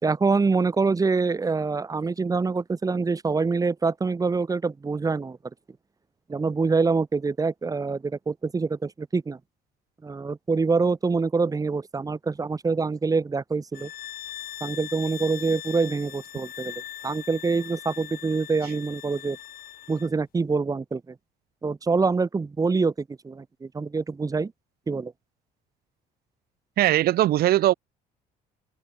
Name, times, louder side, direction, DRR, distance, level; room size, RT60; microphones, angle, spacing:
voice 1, 0.0-5.4 6.3-9.4 10.0-13.9 14.6-16.7 17.0-19.4 19.9-21.1 21.6-24.5 24.9-25.1, right 4 dB, 20° right, 1.4 m, -25 dB
sound 1, 13.7-20.1, left 12 dB, 60° left, 2.2 m, -40 dB
voice 2, 26.8-27.7, right 14 dB, 65° right, 1.0 m, -20 dB
cardioid pair, 110°, 17 cm